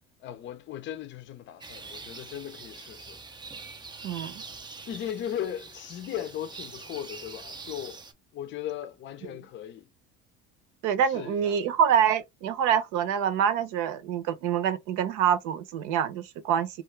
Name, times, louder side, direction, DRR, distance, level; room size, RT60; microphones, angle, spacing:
voice 1, 0.2-3.2 4.9-8.0 8.3-9.9 11.1-11.6, left 10 dB, 40° left, 0.5 m, -37 dB
sound 1, 1.6-8.1, right 4 dB, 15° right, 0.4 m, -44 dB
voice 2, 10.8-16.7, right 8 dB, 70° right, 0.7 m, -26 dB
2.5 x 2.4 x 3.1 m
supercardioid pair, 110°, 31 cm